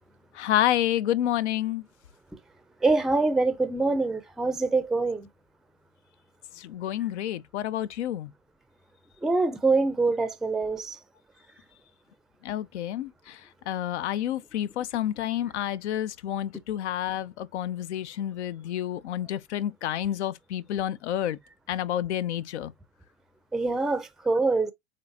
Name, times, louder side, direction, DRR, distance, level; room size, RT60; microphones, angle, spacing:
voice 1, 0.3-1.9 6.5-8.3 12.4-21.4 21.7-22.7, left 11 dB, 85° left, 0.5 m, -29 dB
voice 2, 2.8-5.3 9.2-11.0 23.5-24.7, right 3 dB, ahead, 0.4 m, -24 dB
7.3 x 2.5 x 2.7 m
hypercardioid pair, 105°, 33 cm